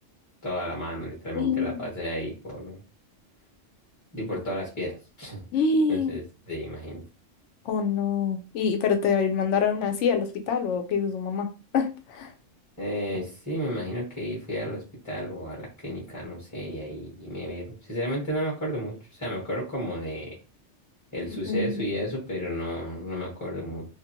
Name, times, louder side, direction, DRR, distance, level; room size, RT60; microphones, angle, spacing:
voice 1, 0.4-2.8 4.1-5.5 5.9-7.0 12.8-20.3 21.1-23.9, equal, 15° left, -3 dB, 0.8 m, -33 dB
voice 2, 1.3-1.9 5.5-6.2 7.6-11.5 11.7-12.3 21.4-21.8, left 5 dB, 75° left, 6 dB, 0.9 m, -25 dB
2.6 x 2.5 x 2.8 m, 0.33 s
omnidirectional pair, 1.3 m